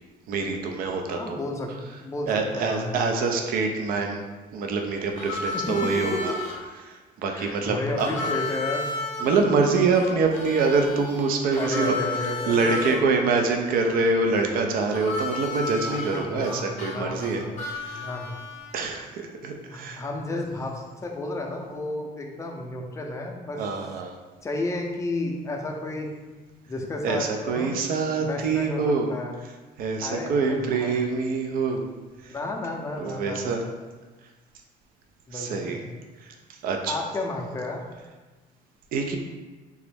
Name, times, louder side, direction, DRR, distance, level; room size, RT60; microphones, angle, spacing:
voice 1, 0.3-1.4 2.3-4.2 4.5-6.4 6.8-8.3 9.2-11.9 12.5-18.1 18.7-20.0 23.6-24.2 27.0-29.1 29.8-31.8 32.2-32.3 33.0-33.6 35.3-35.8 36.2-36.9 38.9-39.2, right 4 dB, 60° right, 3 dB, 0.4 m, -25 dB
voice 2, 1.2-1.7 2.0-2.8 5.5-6.2 7.3-8.9 9.4-9.5 11.6-13.2 15.7-17.6 17.9-18.4 19.7-23.6 24.4-26.1 26.7-27.7 28.1-29.4 30.0-30.9 32.2-33.7 35.3-35.8 36.9-37.8, left 2 dB, 20° left, 0 dB, 0.5 m, -32 dB
Harmonica, 5.1-6.6 8.0-13.0 14.9-18.8, left 3 dB, 45° left, 0.8 m, -33 dB
3.4 x 2.0 x 3.3 m, 1.3 s
cardioid pair, 110°, 17 cm